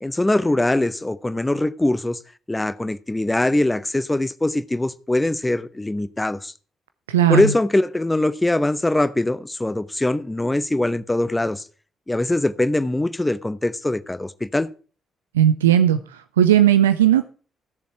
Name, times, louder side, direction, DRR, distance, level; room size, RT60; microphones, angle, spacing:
voice 1, 0.0-2.2 2.5-6.5 7.3-11.6 12.1-14.7, left 1 dB, 15° left, 0.9 m, -22 dB
voice 2, 7.1-7.4 15.3-16.0 16.4-17.2, right 10 dB, 80° right, 0.4 m, -16 dB
15.5 x 7.0 x 4.6 m
figure-of-eight pair, 40°, 0 cm